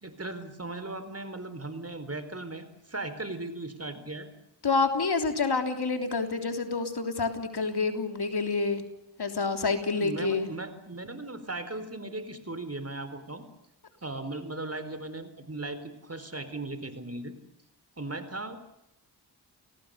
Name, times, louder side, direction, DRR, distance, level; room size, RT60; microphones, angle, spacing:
voice 1, 0.0-4.3 10.0-13.4 14.0-17.3 18.0-18.6, right 2 dB, 35° right, 11 dB, 4.3 m, -37 dB
voice 2, 4.6-8.8 9.2-10.5, left 4 dB, 65° left, 6 dB, 3.5 m, -28 dB
29.0 x 18.5 x 6.8 m, 0.81 s
cardioid pair, 50°, 41 cm